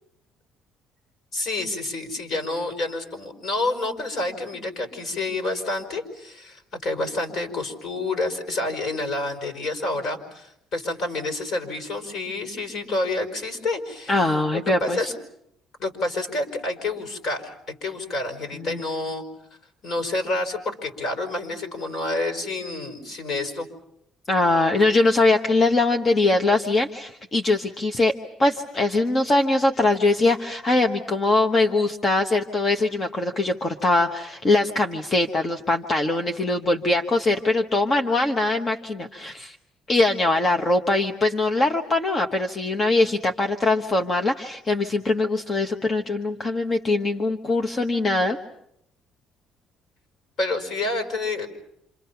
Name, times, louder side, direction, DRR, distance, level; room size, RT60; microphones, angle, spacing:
voice 1, 1.3-14.2 14.5-15.1 15.8-19.2 19.8-23.7 50.4-51.5, left 2 dB, 55° left, 5 dB, 5.4 m, -28 dB
voice 2, 14.1-15.1 18.5-18.8 24.3-28.1 28.4-39.6 39.9-48.4, left 2 dB, 30° left, 5 dB, 1.2 m, -22 dB
27.5 x 27.5 x 5.9 m, 0.76 s
cardioid pair, 120°, 0 cm